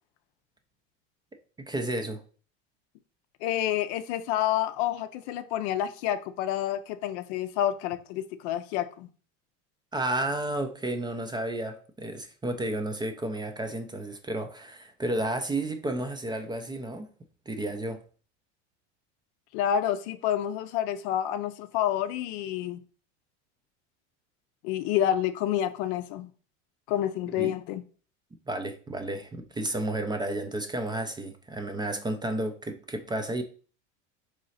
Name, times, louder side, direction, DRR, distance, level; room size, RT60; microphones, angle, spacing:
voice 1, 1.6-2.2 9.9-17.1 17.5-18.0 27.4-27.6 28.5-33.4, right 1 dB, 10° right, 0.4 m, -32 dB
voice 2, 3.4-9.1 19.5-22.8 24.6-26.3 26.9-27.8, left 11 dB, 65° left, 0.5 m, -28 dB
3.8 x 3.2 x 4.1 m
supercardioid pair, 105°, 36 cm